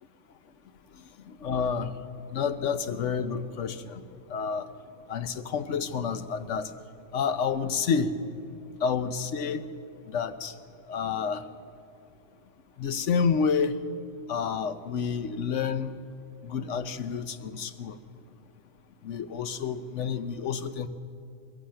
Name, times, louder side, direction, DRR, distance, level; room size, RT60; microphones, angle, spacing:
voice 1, 1.3-1.9 2.3-4.0 4.3-4.7 5.1-6.7 7.1-8.1 8.8-9.6 10.1-10.5 10.9-11.4 12.8-13.8 14.3-16.0 16.4-18.0 19.0-20.9, left 6 dB, 75° left, 11 dB, 1.2 m, -29 dB
21.5 x 15.5 x 7.7 m, 2.5 s
omnidirectional pair, 1.3 m